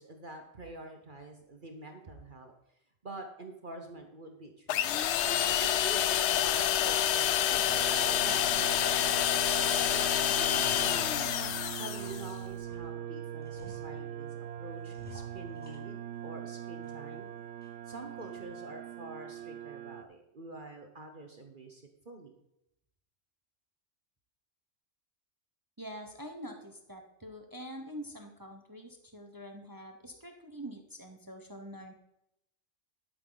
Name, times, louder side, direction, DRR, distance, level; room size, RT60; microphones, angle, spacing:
voice 1, 0.0-2.5 3.0-7.7 8.2-11.4 11.8-15.9 16.2-17.3 17.9-22.3, right 2 dB, 45° right, 4 dB, 1.2 m, -47 dB
sound 1, 4.7-12.3, left 10 dB, 70° left, 0.8 m, -28 dB
sound 2, 7.7-20.0, right 10 dB, 70° right, 0.9 m, -42 dB
sound 3, 8.2-9.0 9.3-10.0 10.3-12.9 13.4-14.3 14.8-16.3 16.6-17.3 17.6-17.7 18.2-18.6, right 1 dB, 5° left, 2.3 m, -55 dB
voice 2, 25.8-31.9, equal, 20° right, 4 dB, 1.0 m, -45 dB
11.5 x 8.9 x 4.0 m, 0.81 s
omnidirectional pair, 1.3 m